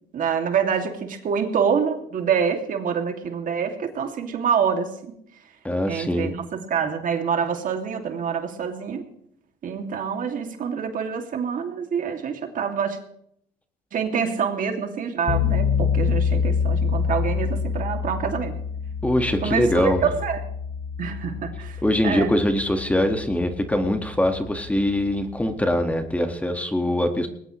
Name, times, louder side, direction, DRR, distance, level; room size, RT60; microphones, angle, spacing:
voice 1, 0.1-5.4 5.9-9.1 9.6-13.0 13.9-18.5 19.4-20.4 21.0-22.3, right 7 dB, 55° right, 4 dB, 2.6 m, -26 dB
voice 2, 5.6-6.3 19.0-20.0 21.8-27.3, left 1 dB, 10° left, 5 dB, 1.8 m, -23 dB
sound 1, 15.3-26.2, left 6 dB, 50° left, 3.0 m, -27 dB
20.5 x 19.0 x 3.2 m, 0.72 s
cardioid pair, 110°, 17 cm